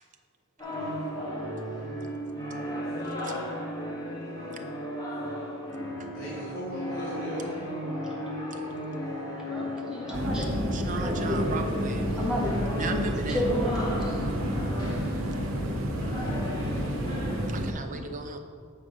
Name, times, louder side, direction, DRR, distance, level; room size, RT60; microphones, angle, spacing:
sound 1, 0.6-17.4, equal, 20° left, 1.4 m, -35 dB
voice 1, 6.1-7.7 12.9-13.3 15.4-16.7, equal, 50° left, -9 dB, 2.1 m, -39 dB
voice 2, 9.5-10.5 10.8-11.4 12.2-13.1 13.3-14.1, equal, 5° right, -6 dB, 1.5 m, -31 dB
sound 2, 10.1-17.7, equal, 80° right, 0.9 m, -30 dB
voice 3, 10.7-12.1 12.7-13.5 16.7-16.9 17.5-18.4, right 4 dB, 40° right, 5 dB, 0.6 m, -36 dB
7.6 x 5.2 x 5.0 m, 2.1 s
head